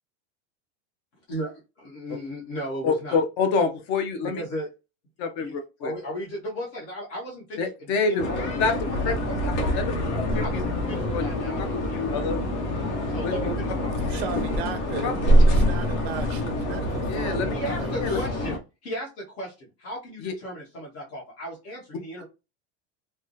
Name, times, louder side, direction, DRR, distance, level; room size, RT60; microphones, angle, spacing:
voice 1, 1.3-3.2 4.2-4.7 5.4-9.7 10.4-12.2 13.1-14.3 17.5-22.2, equal, 60° left, 1.4 m, -36 dB
voice 2, 2.8-4.4 5.2-5.9 7.6-8.2 8.6-8.7 9.0-9.1 9.7-9.9 10.3-10.6 11.1-11.2 11.6-11.7 12.1-12.4 13.2-13.5 15.0-15.1 17.1-17.5 18.0-18.2 20.2-20.3, left 4 dB, 35° left, 0.5 m, -26 dB
sound 1, 8.2-18.6, equal, 75° left, 1.0 m, -25 dB
voice 3, 14.0-18.2, right 9 dB, 65° right, 0.5 m, -36 dB
3.4 x 2.2 x 2.6 m
supercardioid pair, 175°, 35 cm